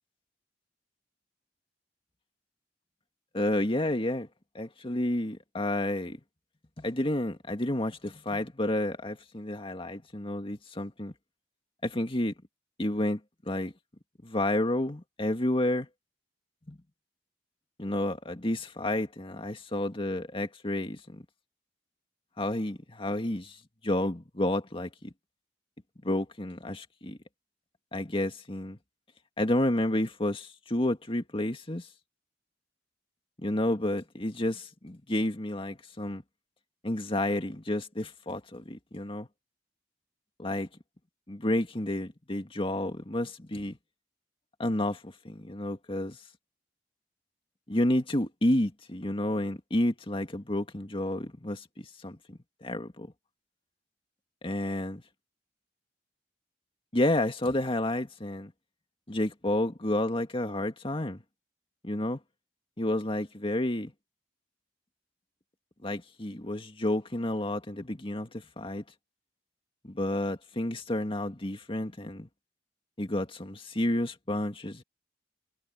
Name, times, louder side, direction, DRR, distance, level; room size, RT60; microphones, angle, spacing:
voice 1, 3.3-4.3 4.5-6.2 6.8-11.1 11.8-12.3 12.8-13.2 13.5-13.7 14.2-15.9 16.7-16.8 17.8-21.2 22.4-23.6 23.8-25.1 26.0-27.2 27.9-28.8 29.4-31.9 33.4-36.2 36.8-39.3 40.4-40.7 41.3-43.8 44.6-46.2 47.7-53.1 54.4-55.0 56.9-58.5 59.1-61.2 61.8-62.2 62.8-63.9 65.8-68.8 69.8-72.3 73.0-74.8, left 1 dB, 30° left, 2.1 m, -30 dB
head